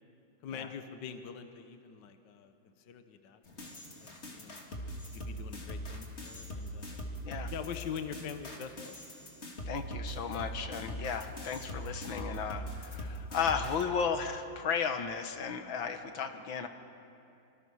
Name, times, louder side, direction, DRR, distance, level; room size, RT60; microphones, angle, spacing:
voice 1, 0.4-4.6 5.1-7.1 7.5-9.0 9.4-9.5, left 7 dB, 65° left, 7 dB, 1.7 m, -44 dB
sound 1, 3.4-13.8, equal, 35° left, 2.5 m, -41 dB
voice 2, 9.6-16.7, left 6 dB, 85° left, 7 dB, 2.0 m, -34 dB
26.5 x 24.5 x 6.4 m, 2.7 s
omnidirectional pair, 2.1 m